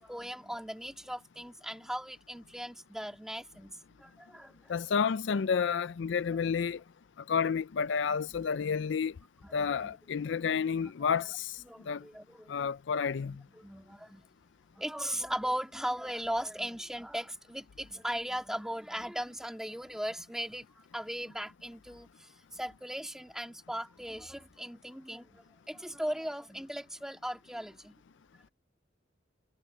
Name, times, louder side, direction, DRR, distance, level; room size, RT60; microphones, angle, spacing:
voice 1, 0.0-4.7 6.0-6.1 6.5-6.6 8.1-8.2 8.6-8.8 9.4-10.0 10.2-10.4 10.8-10.9 11.7-12.7 13.3-14.3 14.7-27.9, equal, 5° right, 2.6 m, -38 dB
voice 2, 4.7-6.8 7.3-9.1 9.5-11.5 11.9-12.0 12.5-13.4, left 6 dB, 70° left, 0.4 m, -30 dB
head